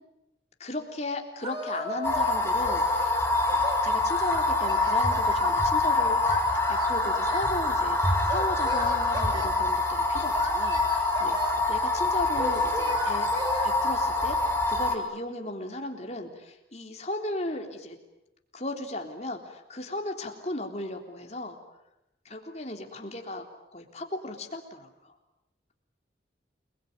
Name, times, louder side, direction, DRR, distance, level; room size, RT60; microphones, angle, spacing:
voice 1, 0.6-3.2 3.5-6.4 6.7-11.4 11.7-13.3 13.6-18.0 18.5-21.6 22.3-23.4 23.7-25.1, left 1 dB, 35° left, 3 dB, 3.6 m, -36 dB
Singing, 1.4-2.3 2.6-3.8 4.3-5.6 6.3-7.6 8.3-9.5 10.3-11.6 12.4-13.7, equal, 25° right, 5.1 m, -36 dB
sound 1, 2.0-14.9, left 2 dB, 15° left, 4.0 m, -25 dB
29.0 x 21.0 x 9.6 m, 0.90 s
head